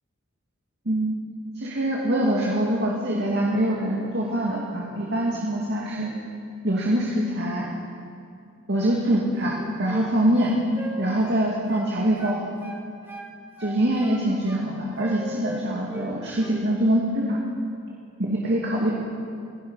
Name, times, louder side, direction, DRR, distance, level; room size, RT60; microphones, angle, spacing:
voice 1, 0.9-1.2 1.6-6.1 6.6-7.7 8.7-10.6 11.0-12.4 13.6-17.4 18.2-18.9, right 1 dB, 60° right, -2 dB, 2.4 m, -24 dB
sound 1, 9.4-10.1 10.4-11.9 12.2-13.3 13.6-14.6 15.0-16.1 16.4-16.6, right 1 dB, 10° right, 2.6 m, -39 dB
27.5 x 17.0 x 5.7 m, 2.4 s
head